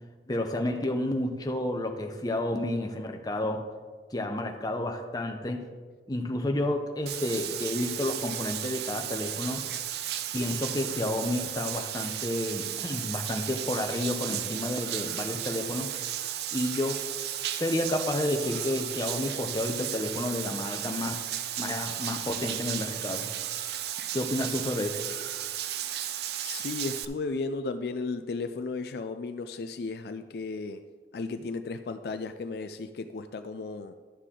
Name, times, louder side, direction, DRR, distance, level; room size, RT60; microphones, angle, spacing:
voice 1, 0.3-3.6 4.1-5.6 6.1-9.7 10.3-15.9 16.5-17.0 17.6-21.2 21.6-23.3 24.1-25.0, left 1 dB, 20° left, 4 dB, 0.7 m, -30 dB
Bathtub (filling or washing), 7.1-27.1, right 11 dB, 65° right, 0.4 m, -34 dB
voice 2, 26.4-30.8 31.1-33.9, left 3 dB, 60° left, 9 dB, 0.4 m, -34 dB
11.5 x 6.5 x 3.8 m, 1.5 s
head